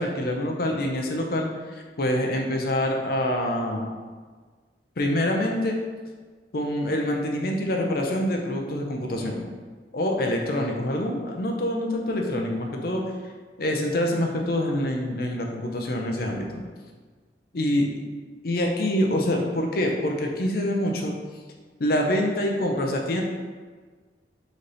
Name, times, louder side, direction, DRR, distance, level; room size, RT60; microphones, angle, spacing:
voice 1, 0.0-3.9 5.0-5.8 6.5-9.5 9.9-13.0 13.6-16.6 17.5-17.9 18.4-21.1 21.8-23.2, left 1 dB, 55° left, 1 dB, 0.6 m, -26 dB
4.1 x 3.3 x 4.0 m, 1.5 s
head